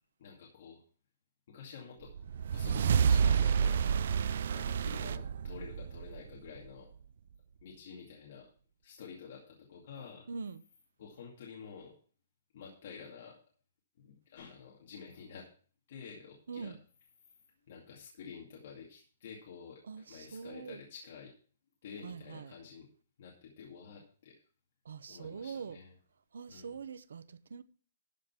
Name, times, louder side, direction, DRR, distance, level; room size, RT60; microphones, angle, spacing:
voice 1, 0.2-0.8 1.5-3.8 4.5-6.9 7.6-8.5 8.8-10.3 11.0-11.9 12.5-13.4 14.0-15.5 15.9-16.8 17.7-21.3 21.8-22.9 23.2-24.4 25.1-25.9 26.5-26.8, left 6 dB, 40° left, 2.3 m, -50 dB
sound 1, 2.1-6.7, right 7 dB, 50° right, 0.4 m, -29 dB
voice 2, 10.3-10.6 16.5-16.8 19.9-20.8 22.0-22.5 24.8-25.8 26.3-27.6, right 5 dB, 80° right, 0.9 m, -43 dB
13.0 x 5.3 x 5.9 m
hypercardioid pair, 175°, 0 cm